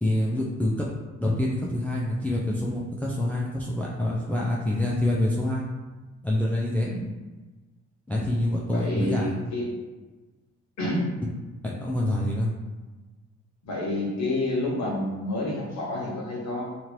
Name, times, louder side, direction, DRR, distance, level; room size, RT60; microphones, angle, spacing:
voice 1, 0.0-0.9 1.2-5.6 6.2-6.9 8.1-9.4 11.6-12.5, left 1 dB, 5° left, -4 dB, 0.3 m, -26 dB
voice 2, 8.7-9.7 10.8-11.0 13.6-16.6, left 1 dB, 65° left, -3 dB, 1.0 m, -29 dB
2.9 x 2.5 x 3.0 m, 1.2 s
cardioid pair, 90°, 30 cm